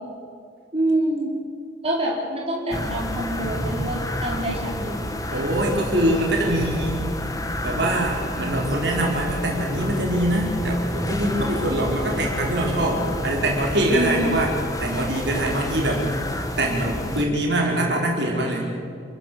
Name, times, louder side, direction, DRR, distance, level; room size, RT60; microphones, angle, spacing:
voice 1, 0.7-1.3 1.8-5.0 13.9-14.3, right 1 dB, 30° right, -4 dB, 4.8 m, -26 dB
sound 1, 2.7-17.3, left 1 dB, 20° left, 1.7 m, -29 dB
voice 2, 5.3-7.0 7.6-14.5 14.8-16.0 16.6-18.7, right 1 dB, 65° right, -2 dB, 5.1 m, -23 dB
29.0 x 15.0 x 7.9 m, 2.3 s
head